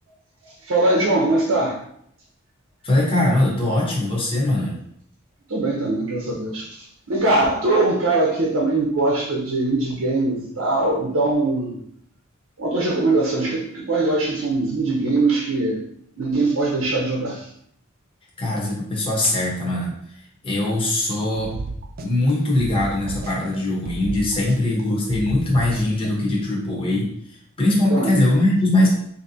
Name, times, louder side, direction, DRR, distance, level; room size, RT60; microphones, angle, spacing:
voice 1, 0.4-1.8 5.5-11.8 12.6-15.8 16.2-17.5 27.9-28.1, right 2 dB, 75° right, -3 dB, 0.8 m, -21 dB
voice 2, 2.8-4.8 18.4-21.5 22.0-28.9, left 1 dB, 25° left, -4 dB, 0.9 m, -21 dB
sound 1, 21.4-22.3 22.6-23.6 23.9-24.8 25.1-26.1, right 3 dB, 45° right, 0.5 m, -33 dB
4.3 x 2.8 x 2.7 m, 0.69 s
head